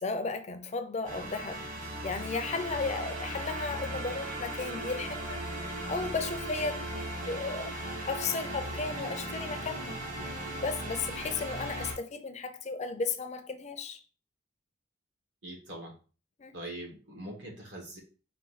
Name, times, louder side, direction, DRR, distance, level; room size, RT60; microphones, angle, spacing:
voice 1, 0.0-5.4 5.9-6.8 7.3-7.7 8.1-10.1 10.6-14.0 16.4-16.6, left 4 dB, 35° left, 0.5 m, -34 dB
sound 1, 1.0-11.9, right 1 dB, 40° right, 1.4 m, -37 dB
voice 2, 15.4-15.9 16.5-18.0, right 1 dB, 65° right, 1.6 m, -42 dB
4.3 x 2.6 x 4.0 m
head